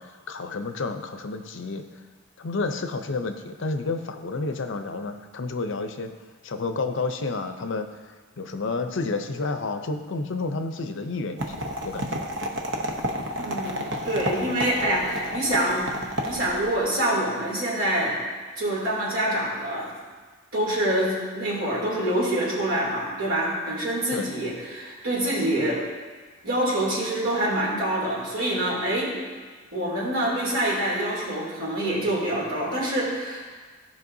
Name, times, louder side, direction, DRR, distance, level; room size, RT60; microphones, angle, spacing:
voice 1, 0.0-1.8 2.4-6.1 6.4-7.9 8.4-12.2 12.9-13.0 24.1-24.3, left 3 dB, 65° left, 7 dB, 0.6 m, -30 dB
sound 1, 11.4-16.8, equal, 65° right, 0.9 m, -31 dB
voice 2, 13.4-15.9 16.2-18.2 18.6-19.9 20.5-25.8 26.4-29.1 29.7-33.4, right 1 dB, 90° right, -5 dB, 2.8 m, -26 dB
15.0 x 5.4 x 2.7 m, 1.4 s
head